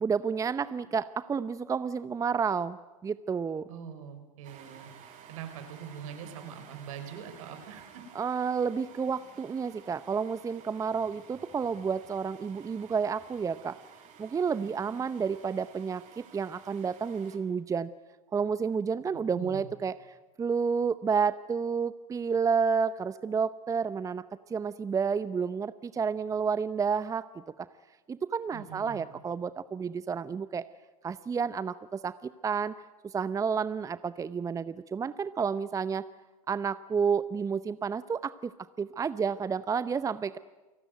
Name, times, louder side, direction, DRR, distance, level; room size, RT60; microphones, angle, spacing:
voice 1, 0.0-3.7 8.1-13.8 14.2-17.9 18.3-20.0 20.4-27.3 27.6-27.7 28.1-30.6 31.0-32.1 32.4-32.7 33.0-36.0 36.5-38.5 38.8-40.4, right 6 dB, 20° right, 15 dB, 0.8 m, -30 dB
voice 2, 3.7-4.9 5.3-8.0 14.9-15.0 19.3-19.7 28.5-29.1, right 8 dB, 70° right, 7 dB, 5.2 m, -43 dB
sound 1, 4.4-17.4, right 7 dB, 45° right, 6.0 m, -53 dB
29.0 x 18.5 x 9.3 m, 1.1 s
hypercardioid pair, 95°, 18 cm